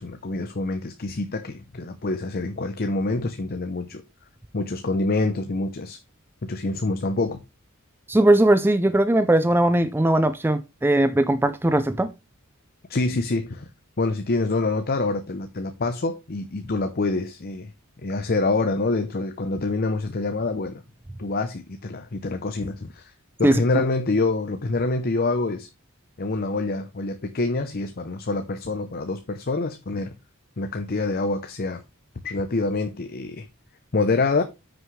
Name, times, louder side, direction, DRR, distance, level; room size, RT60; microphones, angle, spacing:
voice 1, 0.0-4.0 4.5-6.0 6.4-7.4 12.9-13.7 14.0-17.7 18.0-20.8 21.2-23.1 23.4-25.7 26.2-30.1 30.6-31.8 32.2-33.5 33.9-34.4, left 3 dB, 45° left, 0.7 m, -26 dB
voice 2, 8.1-12.1 23.4-23.8, right 1 dB, 10° right, 0.4 m, -19 dB
9.3 x 6.2 x 3.2 m
head